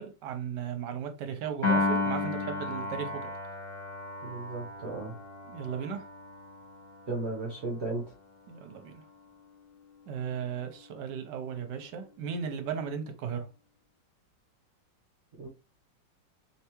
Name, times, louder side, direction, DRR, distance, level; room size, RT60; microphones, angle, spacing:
voice 1, 0.0-3.3 5.5-6.0 8.5-9.0 10.1-13.5, right 7 dB, 70° right, 1.3 m, -36 dB
Piano, 1.6-8.0, left 3 dB, 15° left, 1.2 m, -34 dB
voice 2, 4.2-5.1 7.1-8.0 15.4-15.5, right 2 dB, 45° right, 1.0 m, -35 dB
3.4 x 3.3 x 3.0 m
omnidirectional pair, 2.0 m